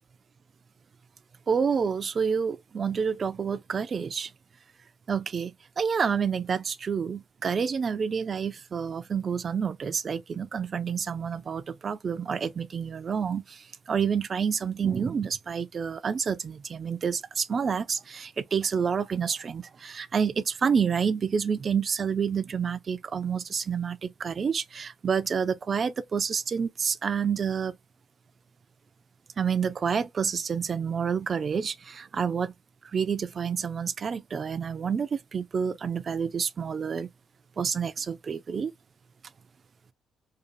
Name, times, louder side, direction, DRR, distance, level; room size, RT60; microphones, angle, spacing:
voice 1, 1.5-4.3 5.1-27.8 29.4-32.5 32.8-37.1 37.6-38.7, right 6 dB, 45° right, 0.3 m, -28 dB
2.6 x 2.3 x 2.5 m
cardioid pair, 90°, 0 cm